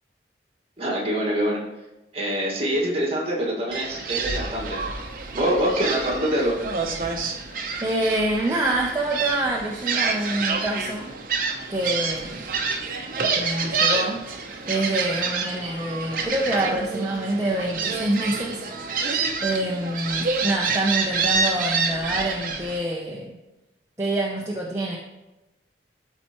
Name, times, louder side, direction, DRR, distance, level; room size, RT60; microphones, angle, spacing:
voice 1, 0.8-1.6 2.1-4.8 5.3-6.6, equal, 35° right, -2 dB, 1.7 m, -24 dB
Gull seagull, 3.7-22.8, right 4 dB, 50° right, 0.7 m, -28 dB
voice 2, 7.8-11.2 11.7-12.5 13.3-14.3 14.7-18.6 19.4-23.3 24.0-25.0, right 1 dB, 15° right, -3 dB, 0.6 m, -26 dB
12.5 x 4.4 x 3.0 m, 1.0 s
head